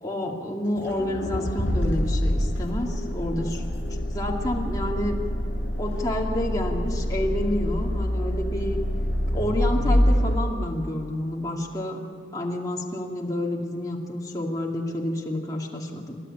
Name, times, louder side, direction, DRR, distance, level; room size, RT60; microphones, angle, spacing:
voice 1, 0.0-5.2 5.8-8.8 9.3-12.0 12.3-16.2, left 1 dB, 20° left, -2 dB, 2.5 m, -29 dB
Accelerating revving vroom, 0.8-10.4, equal, 65° left, 8.0 m, -26 dB
29.5 x 12.5 x 8.7 m, 2.2 s
head